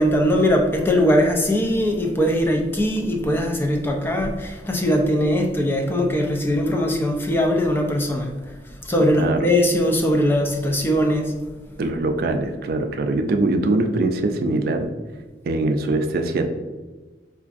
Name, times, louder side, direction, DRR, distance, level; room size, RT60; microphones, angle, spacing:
voice 1, 0.0-8.3 8.8-11.3, equal, 15° left, 2 dB, 0.4 m, -20 dB
voice 2, 11.8-14.9 15.4-16.5, right 2 dB, 55° right, 5 dB, 0.3 m, -22 dB
4.7 x 2.4 x 2.4 m, 1.3 s
head